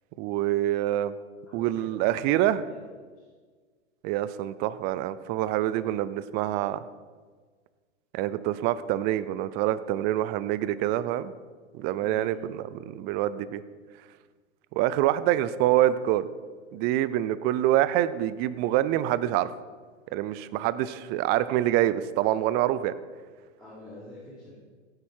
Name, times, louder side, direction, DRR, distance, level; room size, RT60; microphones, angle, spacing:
voice 1, 0.2-1.1 1.5-2.6 4.0-6.8 8.1-11.3 11.7-13.6 14.7-16.3 16.7-19.5 20.1-22.9, right 13 dB, 30° right, 16 dB, 0.5 m, -26 dB
voice 2, 1.5-2.8 3.2-3.3 12.0-12.4 23.6-24.6, equal, ahead, -11 dB, 3.9 m, -47 dB
15.5 x 8.6 x 4.5 m, 1.5 s
hypercardioid pair, 125°, 35 cm